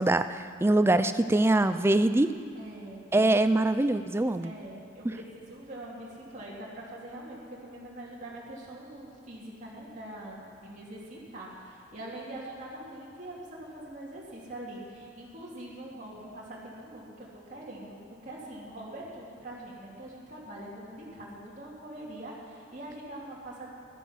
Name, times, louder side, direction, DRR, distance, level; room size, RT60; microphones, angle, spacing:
voice 1, 0.0-2.3 3.1-4.5, right 2 dB, 10° right, 11 dB, 0.4 m, -23 dB
voice 2, 2.5-3.1 4.4-23.7, right 1 dB, 40° right, -6 dB, 2.6 m, -43 dB
14.5 x 12.0 x 5.8 m, 2.3 s
head